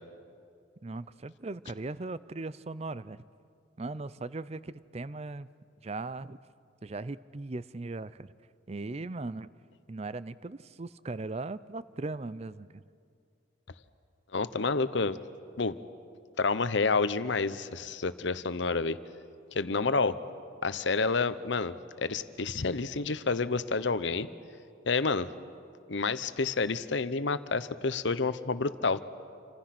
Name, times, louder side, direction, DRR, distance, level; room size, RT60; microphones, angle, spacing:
voice 1, 0.8-3.2 3.8-5.5 5.8-6.4 6.8-8.3 8.7-9.5 9.9-12.8, right 3 dB, 35° right, 17 dB, 0.5 m, -38 dB
voice 2, 14.3-15.2 15.6-15.8 16.4-19.0 19.5-20.2 20.6-21.7 22.0-24.3 24.9-25.3 25.9-29.0, left 4 dB, 70° left, 13 dB, 0.9 m, -29 dB
29.0 x 25.5 x 6.0 m, 2.4 s
head